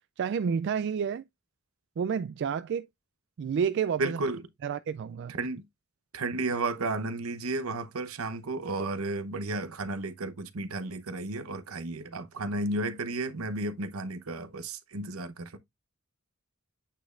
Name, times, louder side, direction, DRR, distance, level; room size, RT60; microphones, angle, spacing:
voice 1, 0.2-1.2 2.0-2.9 3.4-4.2 4.6-5.3, right 7 dB, 55° right, 0.3 m, -29 dB
voice 2, 4.0-4.4 5.3-5.6 6.1-15.6, right 2 dB, 80° right, 0.9 m, -33 dB
8.6 x 5.1 x 2.4 m
head